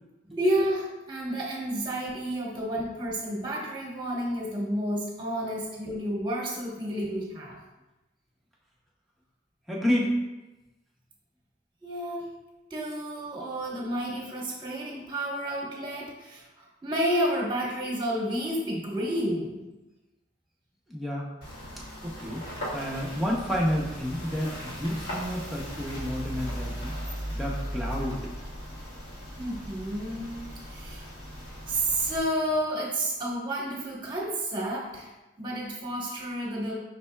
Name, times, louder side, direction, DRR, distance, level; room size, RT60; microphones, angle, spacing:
voice 1, 0.3-7.6 11.8-12.3 12.7-19.6 29.4-31.1 31.7-35.1 35.4-36.7, right 1 dB, 25° right, -3 dB, 1.0 m, -30 dB
voice 2, 9.7-10.1 20.9-21.3 21.8-22.4 22.7-26.9 27.3-28.2, equal, ahead, -4 dB, 0.6 m, -30 dB
sound 1, 21.4-32.2, equal, 65° left, 1.3 m, -37 dB
5.4 x 4.1 x 2.2 m, 1.1 s
head